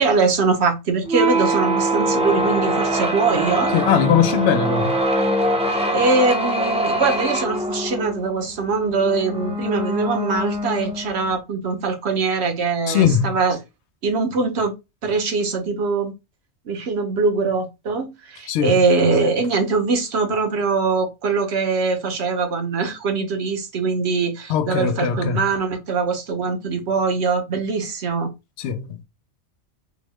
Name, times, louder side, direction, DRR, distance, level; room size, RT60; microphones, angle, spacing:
voice 1, 0.0-3.7 5.7-13.6 14.0-14.7 15.0-16.1 16.7-28.3, right 4 dB, 70° right, 1.0 m, -22 dB
sound 1, 1.0-11.4, right 1 dB, 10° right, 0.3 m, -23 dB
voice 2, 3.7-5.0 12.9-13.3 18.5-18.7 24.5-25.5 28.6-29.0, left 8 dB, 75° left, 0.8 m, -20 dB
3.6 x 2.0 x 3.4 m
omnidirectional pair, 1.2 m